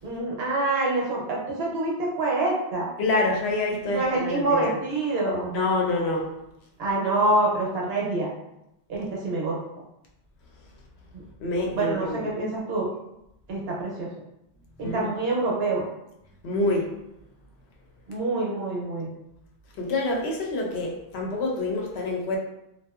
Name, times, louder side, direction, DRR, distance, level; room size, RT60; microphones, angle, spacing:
voice 1, 0.0-2.9 3.9-5.5 6.8-8.3 8.9-9.6 11.1-11.2 11.7-12.9 13.5-14.1 14.8-15.9 18.1-19.1, right 2 dB, 65° right, -3 dB, 0.9 m, -26 dB
voice 2, 3.0-4.7 5.5-6.3 11.4-12.3 14.8-15.1 16.4-16.9 19.8-22.4, left 2 dB, 70° left, 0 dB, 0.8 m, -26 dB
2.6 x 2.3 x 2.3 m, 0.85 s
omnidirectional pair, 1.2 m